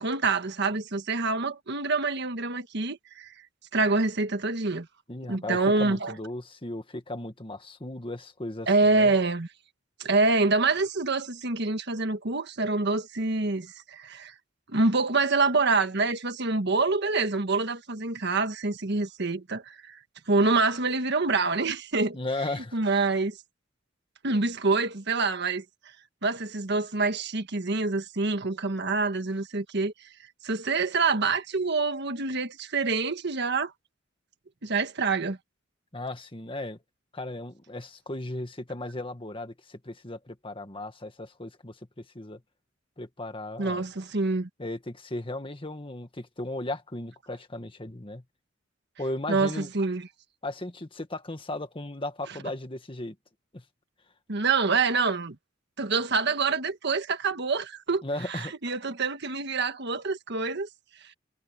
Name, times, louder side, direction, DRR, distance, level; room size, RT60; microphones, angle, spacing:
voice 1, 0.0-3.3 3.7-4.9 5.3-6.1 8.7-9.5 10.0-14.3 14.7-20.0 20.3-22.2 22.6-23.4 24.2-25.6 26.2-30.1 30.4-33.7 34.6-35.4 43.6-44.5 49.3-50.1 54.3-55.4 55.8-60.7 61.0-61.1, right 3 dB, 60° right, 1.5 m, -26 dB
voice 2, 5.1-9.1 22.1-22.8 35.9-36.8 37.1-42.4 43.0-43.8 44.6-48.2 49.0-49.7 50.4-53.2 53.5-53.6 58.0-58.5, left 2 dB, 25° left, 1.8 m, -36 dB
head